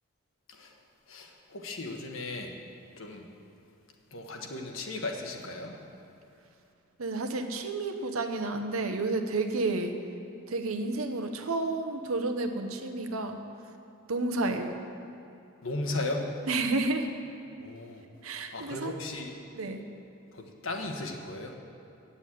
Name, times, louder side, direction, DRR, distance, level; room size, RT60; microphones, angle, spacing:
voice 1, 1.1-2.5 3.0-3.2 4.1-5.8 15.6-16.3 17.6-18.0 18.5-19.3 20.3-21.5, left 2 dB, 70° left, 2 dB, 1.2 m, -36 dB
voice 2, 7.0-9.9 10.5-13.4 14.1-14.8 16.5-17.1 18.2-18.9 19.5-19.8, right 2 dB, 85° right, 6 dB, 0.9 m, -31 dB
9.2 x 7.1 x 8.5 m, 2.7 s
head